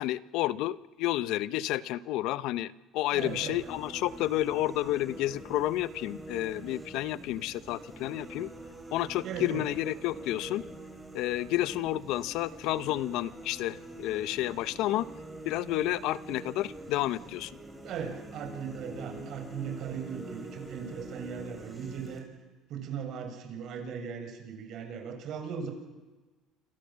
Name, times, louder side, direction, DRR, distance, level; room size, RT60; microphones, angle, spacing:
voice 1, 0.0-8.5 8.9-10.6 11.1-15.1 15.4-17.5, left 15 dB, 75° left, 16 dB, 0.9 m, -30 dB
voice 2, 3.1-3.6 9.2-9.6 17.8-22.3 22.7-25.7, right 7 dB, 60° right, 5 dB, 7.0 m, -38 dB
sound 1, 3.2-22.2, right 1 dB, 5° right, 6.9 m, -45 dB
27.5 x 26.5 x 7.6 m, 1.2 s
cardioid pair, 115°, 0 cm